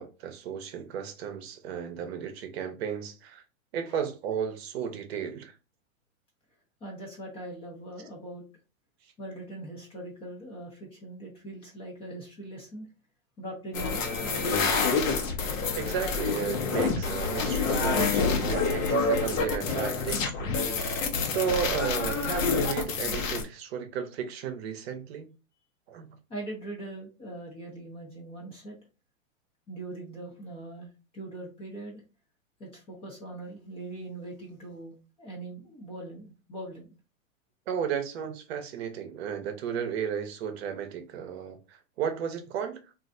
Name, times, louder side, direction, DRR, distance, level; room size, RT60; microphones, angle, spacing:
voice 1, 0.0-3.4 3.7-5.5 15.8-20.5 21.2-25.3 25.9-26.2 37.7-42.8, right 8 dB, 50° right, 0.7 m, -34 dB
voice 2, 6.8-8.5 9.2-12.9 13.4-14.9 26.3-28.8 29.7-32.0 32.6-36.9, right 1 dB, 15° left, 0.5 m, -41 dB
sound 1, 13.7-23.4, left 4 dB, 70° left, 0.9 m, -27 dB
3.1 x 2.5 x 2.5 m
hypercardioid pair, 140°, 41 cm